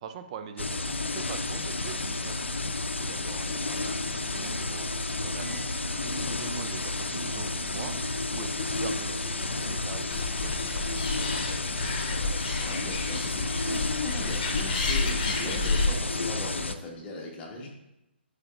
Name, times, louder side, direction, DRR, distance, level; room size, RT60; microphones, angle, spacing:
voice 1, 0.0-5.7 6.0-11.6, right 7 dB, 35° right, 8 dB, 0.5 m, -44 dB
sound 1, 0.6-16.7, left 3 dB, 90° left, 0.5 m, -31 dB
sound 2, 3.8-10.3, right 2 dB, 85° right, 1.0 m, -46 dB
Animal, 10.1-15.9, left 3 dB, 40° left, 1.1 m, -31 dB
voice 2, 12.6-17.7, left 2 dB, 20° left, -1 dB, 1.2 m, -38 dB
8.2 x 4.9 x 2.5 m, 0.91 s
figure-of-eight pair, 140°, 6 cm